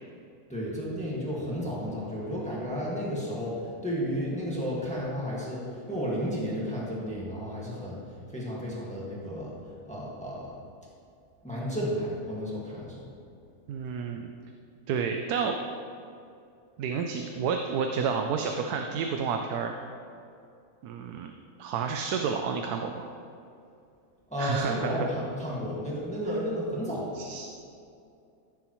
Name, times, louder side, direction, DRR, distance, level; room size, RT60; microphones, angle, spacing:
voice 1, 0.5-8.0 8.3-10.4 11.4-13.0 24.3-27.2, equal, 5° left, -6 dB, 1.6 m, -32 dB
voice 2, 13.7-14.3 14.9-15.6 16.8-19.7 20.8-21.3 21.6-23.1 24.4-25.1 27.2-27.5, right 6 dB, 80° right, 4 dB, 1.1 m, -30 dB
14.5 x 7.2 x 3.1 m, 2.5 s
omnidirectional pair, 1.6 m